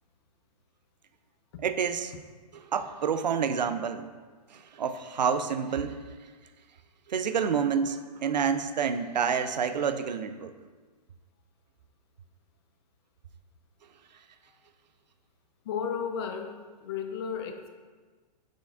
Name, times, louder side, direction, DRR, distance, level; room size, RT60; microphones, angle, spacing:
voice 1, 1.6-2.1 2.7-4.1 4.5-6.0 7.1-10.5, right 7 dB, 85° right, 10 dB, 0.4 m, -28 dB
voice 2, 15.6-17.7, left 7 dB, 40° left, 6 dB, 0.5 m, -34 dB
6.2 x 3.4 x 2.3 m, 1.4 s
hypercardioid pair, 125°, 21 cm